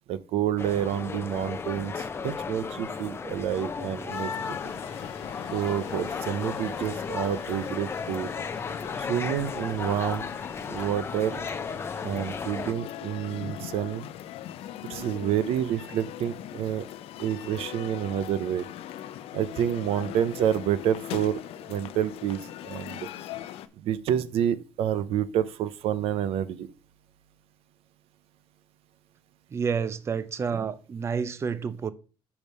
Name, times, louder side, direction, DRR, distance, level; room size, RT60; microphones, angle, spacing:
voice 1, 0.1-4.3 5.5-8.3 9.0-10.3 10.7-11.4 12.0-14.0 14.9-16.8 17.2-18.7 19.3-21.4 21.7-23.1 23.8-26.7, right 10 dB, 85° right, 0.5 m, -28 dB
sound 1, 0.6-12.7, left 5 dB, 25° left, 0.5 m, -35 dB
sound 2, 4.1-23.7, left 12 dB, 80° left, 0.5 m, -41 dB
voice 2, 29.5-31.9, right 6 dB, 30° right, 0.4 m, -29 dB
5.3 x 4.8 x 5.3 m
cardioid pair, 150°, 10 cm